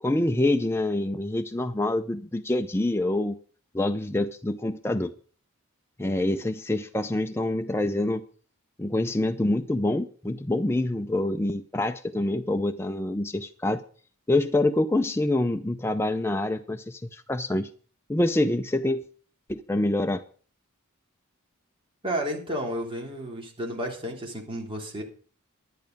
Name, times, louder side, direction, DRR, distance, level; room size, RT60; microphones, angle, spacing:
voice 1, 0.0-3.4 3.7-5.1 6.0-8.2 8.8-13.8 14.3-17.7 18.1-19.0 19.5-20.2, left 1 dB, 10° left, 7 dB, 0.5 m, -26 dB
voice 2, 22.0-25.0, right 1 dB, 25° right, 0 dB, 3.3 m, -32 dB
11.0 x 10.5 x 5.3 m, 0.43 s
head